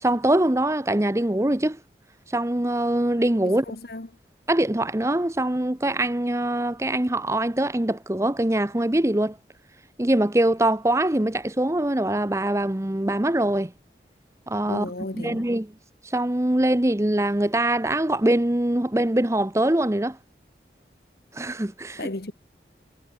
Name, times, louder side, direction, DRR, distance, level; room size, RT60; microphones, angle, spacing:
voice 1, 0.0-1.8 2.3-3.7 4.5-9.4 10.0-13.7 14.5-14.9 15.1-15.7 16.0-20.2 21.3-22.1, right 1 dB, 15° right, 0.8 m, -23 dB
voice 2, 3.4-4.1 14.7-15.4 22.0-22.3, left 2 dB, 60° left, 1.4 m, -34 dB
head